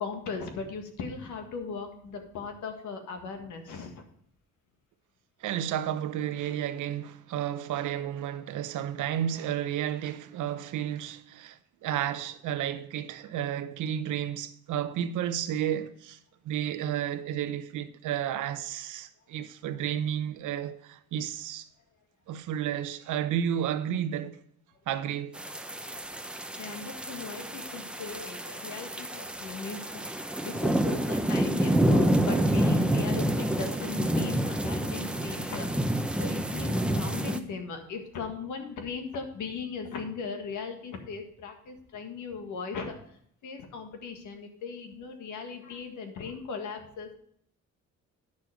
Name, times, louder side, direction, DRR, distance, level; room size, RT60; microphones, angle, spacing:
voice 1, 0.0-4.0 26.6-29.8 30.1-35.7 36.2-43.0 43.4-47.1, left 5 dB, 75° left, 1.8 m, -38 dB
voice 2, 5.4-16.2 16.4-21.7 22.3-24.4 24.9-25.4, right 10 dB, 80° right, 0.8 m, -32 dB
sound 1, 25.4-37.4, right 1 dB, 5° right, 0.8 m, -28 dB
9.7 x 6.5 x 4.8 m
cardioid pair, 90°, 30 cm